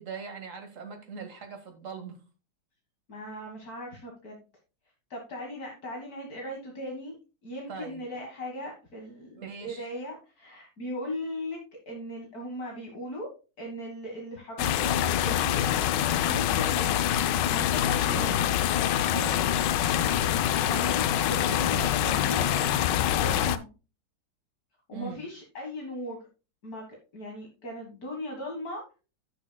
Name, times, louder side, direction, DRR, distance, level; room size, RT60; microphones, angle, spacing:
voice 1, 0.0-2.2 7.7-8.0 9.4-9.9 18.1-18.3 19.1-19.4 21.7-22.0 24.9-25.2, right 6 dB, 45° right, 5 dB, 2.1 m, -40 dB
voice 2, 3.1-4.4 5.1-7.2 7.4-11.6 11.9-13.3 13.6-15.6 16.2-17.0 17.5-18.4 20.7-22.7 23.2-23.7 24.9-26.2 26.6-26.8 27.1-28.8, left 1 dB, 55° left, 0 dB, 2.2 m, -38 dB
sound 1, 14.6-23.6, left 11 dB, 85° left, 1.3 m, -25 dB
15.5 x 6.2 x 2.3 m, 0.32 s
omnidirectional pair, 1.9 m